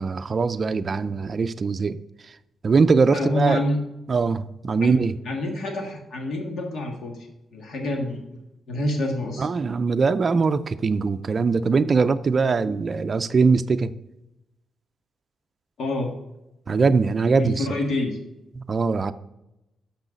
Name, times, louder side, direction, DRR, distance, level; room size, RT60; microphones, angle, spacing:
voice 1, 0.0-2.0 2.6-3.6 4.1-5.2 9.4-13.9 16.7-17.6 18.6-19.1, right 4 dB, 40° right, 10 dB, 0.4 m, -21 dB
voice 2, 3.1-3.8 4.8-7.2 7.5-8.4 8.7-9.5 15.8-16.1 17.3-18.2, left 1 dB, 70° left, 2 dB, 1.6 m, -27 dB
6.5 x 6.0 x 5.2 m, 0.92 s
cardioid pair, 95°, 0 cm